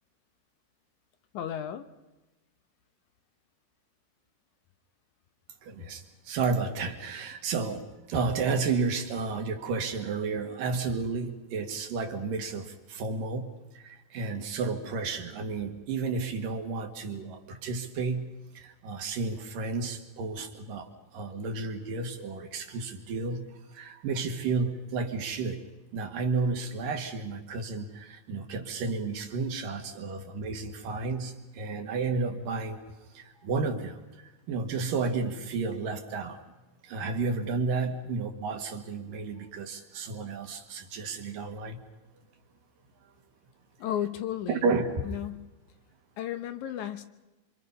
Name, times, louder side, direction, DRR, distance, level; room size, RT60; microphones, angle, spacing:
voice 1, 1.3-1.9 43.8-44.7 45.1-45.5 46.2-47.1, left 10 dB, 70° left, 10 dB, 2.0 m, -33 dB
voice 2, 5.6-13.5 13.7-18.3 18.5-23.4 23.7-25.6 25.9-32.8 33.1-36.4 36.8-41.8 44.5-45.1, right 4 dB, 70° right, 4 dB, 3.3 m, -32 dB
26.5 x 26.0 x 5.5 m, 1.1 s
omnidirectional pair, 4.2 m